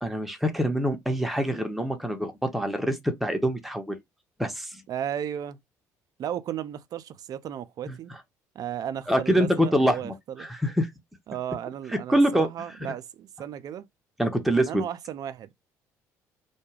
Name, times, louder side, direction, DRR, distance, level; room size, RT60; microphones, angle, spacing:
voice 1, 0.0-4.0 4.4-4.8 7.9-8.0 9.1-10.1 10.4-10.9 12.1-12.5 14.2-14.8, equal, ahead, 0.7 m, -25 dB
voice 2, 4.9-5.6 6.2-8.1 8.5-10.5 11.3-13.9 14.6-15.5, right 10 dB, 50° right, 0.4 m, -34 dB
2.2 x 2.2 x 3.1 m
hypercardioid pair, 55°, 8 cm